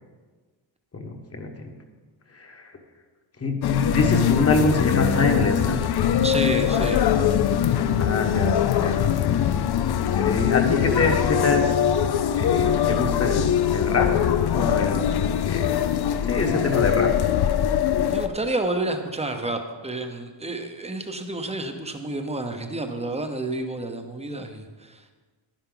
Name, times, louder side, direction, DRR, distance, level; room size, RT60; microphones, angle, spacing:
voice 1, 0.9-1.7 2.3-2.7 3.4-5.8 7.9-9.0 10.0-11.8 12.3-14.1 14.5-16.0 16.2-17.1, left 3 dB, 30° left, 4 dB, 1.2 m, -25 dB
sound 1, 3.6-18.3, left 9 dB, 55° left, 0.5 m, -22 dB
voice 2, 6.2-7.0 18.1-25.1, right 2 dB, 15° right, 6 dB, 0.8 m, -30 dB
11.0 x 10.5 x 3.9 m, 1.4 s
wide cardioid pair, 145°, 47 cm